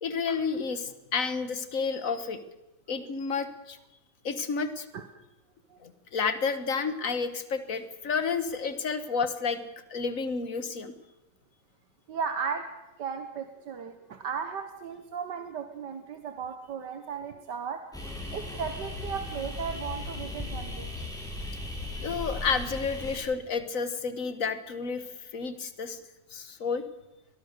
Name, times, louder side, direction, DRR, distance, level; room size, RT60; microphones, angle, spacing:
voice 1, 0.0-2.4 2.9-3.8 4.2-4.9 5.8-9.6 9.9-10.9 21.4-25.1 25.3-26.0 26.3-26.8, left 5 dB, 50° left, 11 dB, 1.7 m, -31 dB
voice 2, 12.1-12.7 13.0-17.8 18.3-20.9, right 6 dB, 70° right, 7 dB, 1.8 m, -35 dB
sound 1, 17.9-23.2, left 2 dB, ahead, 7.4 m, -37 dB
23.0 x 20.0 x 6.7 m, 0.99 s
omnidirectional pair, 2.0 m